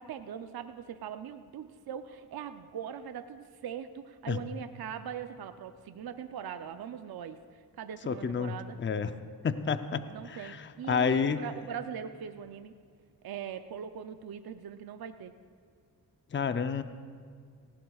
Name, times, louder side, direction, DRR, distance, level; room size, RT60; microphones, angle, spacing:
voice 1, 0.0-8.8 10.1-12.7 13.2-15.3, right 8 dB, 70° right, 9 dB, 0.6 m, -41 dB
voice 2, 8.1-9.1 9.4-11.4 16.3-16.8, left 5 dB, 30° left, 10 dB, 0.6 m, -30 dB
18.0 x 16.0 x 2.4 m, 2.1 s
cardioid pair, 60°, 38 cm